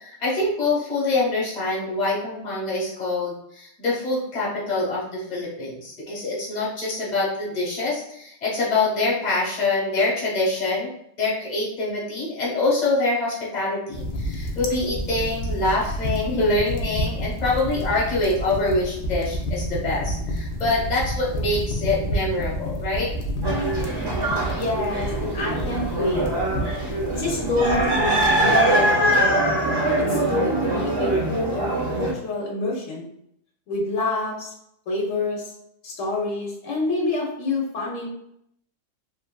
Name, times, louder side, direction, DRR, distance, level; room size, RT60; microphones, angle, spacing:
voice 1, 0.0-10.9 11.2-23.1, left 2 dB, 35° left, -5 dB, 1.1 m, -25 dB
sound 1, 13.9-28.5, equal, 65° left, 0.7 m, -30 dB
sound 2, 23.4-32.1, right 1 dB, 30° right, 0.5 m, -23 dB
voice 2, 24.5-26.2 27.1-29.3 30.1-31.7 31.9-33.1 33.7-34.5 34.9-35.5 35.8-38.1, left 2 dB, 85° left, -2 dB, 1.2 m, -27 dB
3.0 x 2.5 x 2.2 m, 0.74 s
omnidirectional pair, 1.3 m